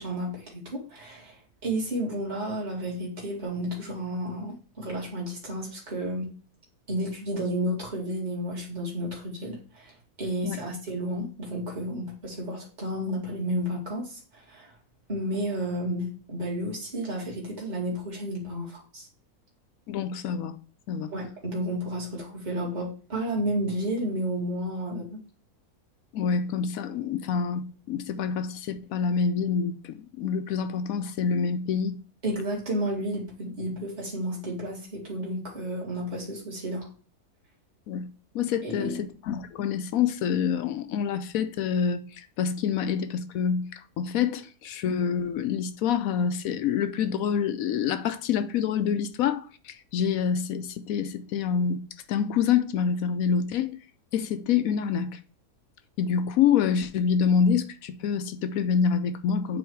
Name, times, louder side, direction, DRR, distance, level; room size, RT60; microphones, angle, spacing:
voice 1, 0.0-6.3 6.9-9.9 10.2-14.7 15.1-19.1 21.1-25.2 32.2-36.9 38.6-39.0, right 1 dB, 30° right, 2.3 m, -32 dB
voice 2, 19.9-20.5 20.9-21.1 26.1-32.0 37.9-38.1 38.3-51.8 52.1-53.8 54.1-55.2 56.0-59.6, left 7 dB, 70° left, 1.0 m, -27 dB
8.6 x 3.1 x 4.5 m
omnidirectional pair, 1.6 m